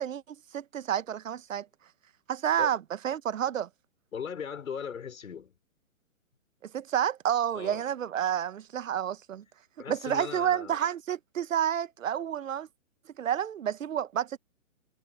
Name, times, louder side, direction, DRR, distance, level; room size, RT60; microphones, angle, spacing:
voice 1, 0.0-1.7 2.3-2.8 3.0-3.7 6.6-9.4 9.9-12.7 13.2-14.4, right 9 dB, 65° right, 1.0 m, -30 dB
voice 2, 4.1-5.6 7.5-7.8 9.8-10.8, left 7 dB, 75° left, 4.7 m, -38 dB
hypercardioid pair, 165°, 41 cm